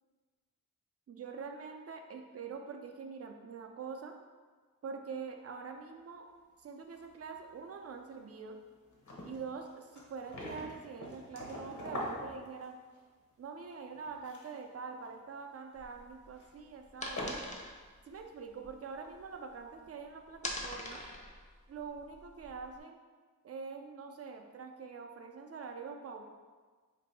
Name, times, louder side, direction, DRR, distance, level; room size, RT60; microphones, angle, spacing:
voice 1, 1.1-4.1 4.8-6.3 6.6-8.6 9.2-12.8 13.4-17.4 18.1-21.0 21.7-23.0 23.4-26.2, right 5 dB, 45° right, 4 dB, 0.4 m, -44 dB
sound 1, 6.9-7.6 7.9-8.0 8.4-8.5 8.8-13.0 13.9-14.6 15.0-15.3 16.3-16.4 17.1-17.7 18.1-18.2, left 1 dB, 60° left, 0.8 m, -43 dB
sound 2, 15.7-19.8 20.1-22.8, left 1 dB, 20° left, 0.5 m, -44 dB
2.6 x 2.6 x 4.0 m, 1.4 s
wide cardioid pair, 75°, 34 cm